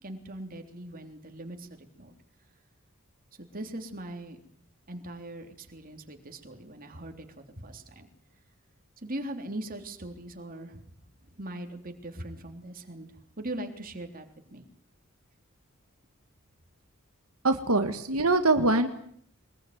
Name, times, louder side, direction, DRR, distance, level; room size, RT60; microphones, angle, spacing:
voice 1, 0.0-2.1 3.4-4.4 4.9-8.1 9.0-10.8 11.3-13.1 13.4-14.6, right 1 dB, 40° right, 5 dB, 3.4 m, -40 dB
voice 2, 17.4-18.9, right 2 dB, 85° right, 7 dB, 1.9 m, -23 dB
23.5 x 21.5 x 9.5 m, 0.66 s
head